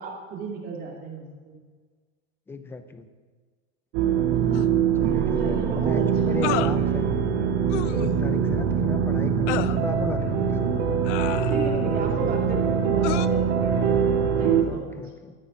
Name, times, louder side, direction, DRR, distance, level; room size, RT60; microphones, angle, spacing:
voice 1, 0.0-1.6 4.3-4.7 5.4-6.8 7.2-7.4 7.8-8.3 11.5-13.7 14.4-15.0, right 3 dB, 25° right, -1 dB, 2.4 m, -35 dB
voice 2, 2.5-3.1 5.0-5.6 5.8-7.1 7.9-10.7 14.7-15.3, left 4 dB, 5° left, 9 dB, 0.5 m, -35 dB
sound 1, 3.9-14.6, right 7 dB, 50° right, 1.7 m, -23 dB
sound 2, 4.5-4.7 6.4-6.8 7.7-8.0 9.5-9.8 11.0-11.8 13.0-13.3, left 15 dB, 90° left, 0.7 m, -30 dB
14.0 x 11.0 x 6.4 m, 1.5 s
supercardioid pair, 170°, 35 cm